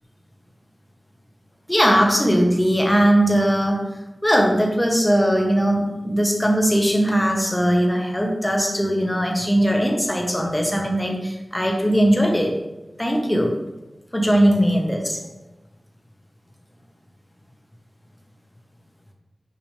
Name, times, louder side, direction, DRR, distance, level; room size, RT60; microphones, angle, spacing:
voice 1, 1.7-3.8 4.2-12.5 13.0-13.5 14.1-15.2, equal, 10° left, 1 dB, 1.2 m, -19 dB
6.5 x 4.8 x 3.3 m, 1.0 s
wide cardioid pair, 80°, 0 cm